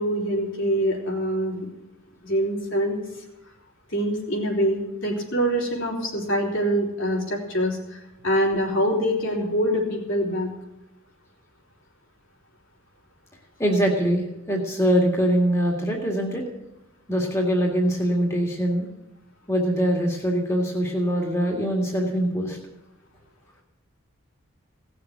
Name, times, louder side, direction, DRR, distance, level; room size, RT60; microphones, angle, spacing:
voice 1, 0.0-1.7 2.2-3.0 3.9-10.5, equal, 65° left, -2 dB, 3.9 m, -25 dB
voice 2, 13.6-16.4 17.1-18.9 19.5-22.6, equal, 15° left, 0 dB, 2.0 m, -23 dB
17.5 x 7.0 x 9.2 m, 0.93 s
head